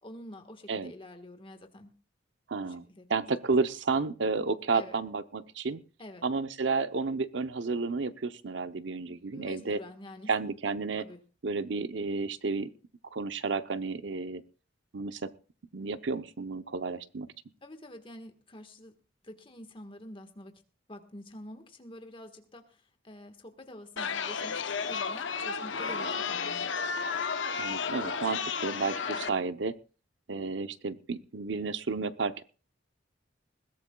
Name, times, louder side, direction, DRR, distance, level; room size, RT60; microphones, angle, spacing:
voice 1, 0.0-1.9 2.6-3.1 4.7-5.0 6.0-6.3 9.1-10.3 11.0-11.2 17.6-19.0 19.2-20.6 20.9-26.7, left 1 dB, 30° left, 7 dB, 1.5 m, -47 dB
voice 2, 2.5-5.8 6.2-9.8 10.3-11.0 11.4-12.7 13.1-14.4 14.9-15.3 15.7-17.3 27.5-29.7 30.3-32.4, right 4 dB, 70° right, 12 dB, 0.7 m, -31 dB
Chatter, 24.0-29.3, left 5 dB, 80° left, 0.8 m, -32 dB
21.0 x 16.0 x 2.3 m, 0.36 s
head